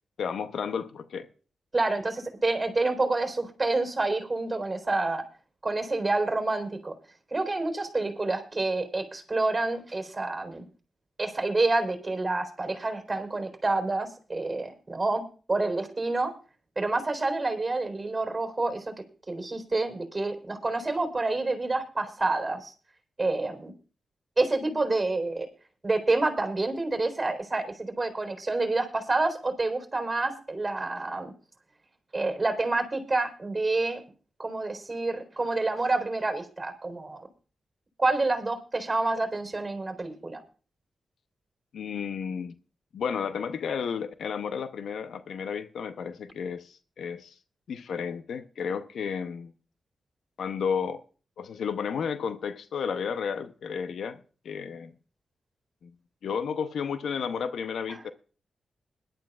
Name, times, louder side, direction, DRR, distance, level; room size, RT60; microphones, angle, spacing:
voice 1, 0.2-1.3 41.7-42.5 42.9-47.3 47.7-49.5 50.4-51.0 51.4-54.9 55.8-55.9 56.2-58.1, left 6 dB, 80° left, 0.8 m, -32 dB
voice 2, 1.7-5.2 5.6-7.0 7.3-10.7 11.2-15.2 15.5-16.3 16.8-18.9 19.3-22.7 23.2-23.7 24.4-25.5 25.8-31.3 32.1-34.0 34.4-37.3 38.0-40.4 57.9-58.0, right 2 dB, 30° right, 3.9 m, -28 dB
21.0 x 12.0 x 2.4 m
cardioid pair, 55°, 0 cm